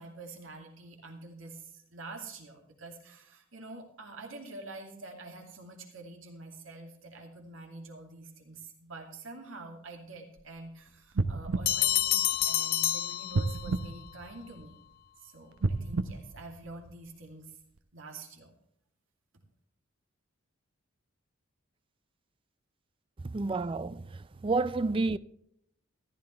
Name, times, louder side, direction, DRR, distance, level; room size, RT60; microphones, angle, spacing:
voice 1, 0.0-14.8 15.2-17.6 17.9-18.5, right 2 dB, 70° right, 2.5 m, -47 dB
sound 1, 11.1-12.8 13.3-14.9 15.5-17.2 17.8-17.9, right 3 dB, 85° right, 0.7 m, -33 dB
Bell, 11.7-13.9, left 13 dB, 45° left, 0.4 m, -28 dB
voice 2, 23.2-24.0 24.4-25.2, right 3 dB, 25° right, 0.4 m, -29 dB
14.5 x 12.5 x 3.3 m
head